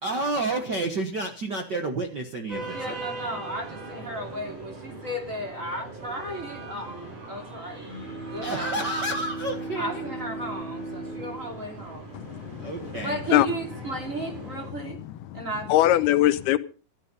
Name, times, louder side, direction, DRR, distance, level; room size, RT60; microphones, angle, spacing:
voice 1, 0.0-3.0 8.4-10.0 12.6-13.2, right 2 dB, 80° right, 0.9 m, -30 dB
sound 1, 2.5-14.7, right 3 dB, 40° right, 9.2 m, -41 dB
voice 2, 2.6-7.9 8.2-8.7 9.7-12.3 13.0-15.0 15.3-16.1, right 1 dB, 20° right, 3.0 m, -35 dB
Bowed string instrument, 7.8-12.9, right 1 dB, 30° left, 0.8 m, -38 dB
voice 3, 12.1-13.5 14.4-16.6, left 14 dB, 85° left, 2.8 m, -24 dB
14.0 x 13.0 x 5.4 m
omnidirectional pair, 4.4 m